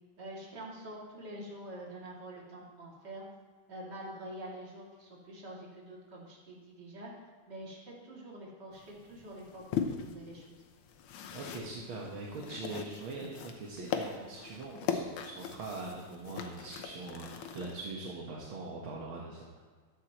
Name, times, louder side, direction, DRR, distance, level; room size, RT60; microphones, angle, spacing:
voice 1, 0.2-3.2 3.7-7.1 7.5-10.6, right 1 dB, 35° right, -4 dB, 2.9 m, -46 dB
sound 1, 8.7-17.8, left 7 dB, 90° left, 1.2 m, -40 dB
voice 2, 11.3-19.6, right 3 dB, 55° right, -3 dB, 1.7 m, -42 dB
14.5 x 12.0 x 3.0 m, 1.5 s
omnidirectional pair, 3.6 m